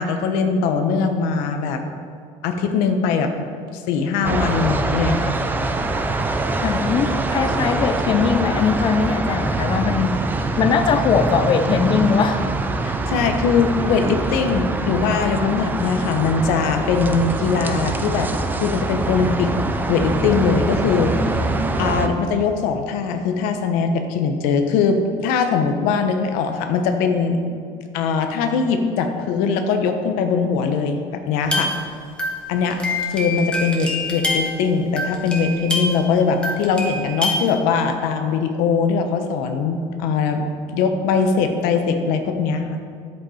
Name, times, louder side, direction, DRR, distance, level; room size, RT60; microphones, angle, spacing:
voice 1, 0.0-1.8 2.4-3.3 3.7-5.4 12.8-18.3 18.6-19.5 19.9-21.5 21.8-27.4 27.9-31.7 32.5-32.8 33.1-42.8, left 5 dB, 90° left, 6 dB, 0.9 m, -21 dB
sound 1, 4.2-22.1, right 2 dB, 15° right, 0.5 m, -24 dB
voice 2, 6.6-10.1 10.6-12.4 22.1-22.2, left 6 dB, 35° left, 8 dB, 0.6 m, -20 dB
sound 2, 31.4-36.1 36.4-37.5, left 2 dB, 5° left, 1.2 m, -26 dB
10.5 x 8.0 x 4.2 m, 2.3 s
cardioid pair, 165°, 14 cm